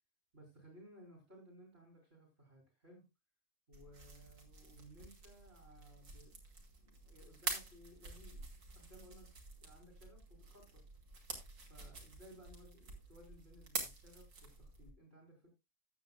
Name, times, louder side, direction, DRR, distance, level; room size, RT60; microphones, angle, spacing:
voice 1, 0.3-3.1 3.7-8.5 8.7-9.3 9.6-10.8 11.7-15.5, equal, 40° right, 0 dB, 3.7 m, -60 dB
sound 1, 3.7-14.9, right 3 dB, 70° right, 3.1 m, -48 dB
15.0 x 9.0 x 2.3 m, 0.23 s
omnidirectional pair, 1.7 m